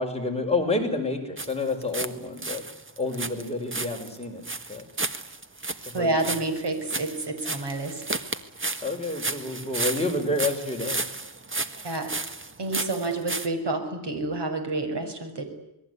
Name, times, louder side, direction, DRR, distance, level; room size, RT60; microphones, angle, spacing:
voice 1, 0.0-2.6 3.0-4.9 6.0-6.1 8.8-11.0, left 2 dB, 15° left, 1 dB, 6.0 m, -29 dB
sound 1, 1.4-2.1 2.4-13.5, right 3 dB, 30° right, 1.7 m, -33 dB
voice 2, 5.9-8.0 11.8-12.1 12.6-15.4, right 2 dB, 65° right, 6 dB, 6.5 m, -29 dB
28.0 x 21.5 x 9.9 m, 0.87 s
wide cardioid pair, 130°, 44 cm